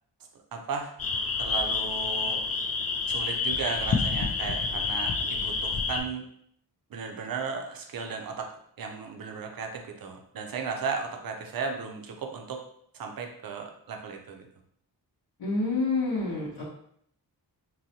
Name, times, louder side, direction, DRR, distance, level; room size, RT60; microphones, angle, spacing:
voice 1, 0.5-0.9 1.4-2.5 3.1-6.3 6.9-8.5 8.8-12.6 12.9-14.5, right 5 dB, 60° right, 3 dB, 0.6 m, -35 dB
sound 1, 1.0-6.0, left 4 dB, 40° left, 0.4 m, -28 dB
voice 2, 15.4-16.6, left 3 dB, 70° left, -8 dB, 0.8 m, -28 dB
3.8 x 2.1 x 2.8 m, 0.67 s
wide cardioid pair, 105°, 40 cm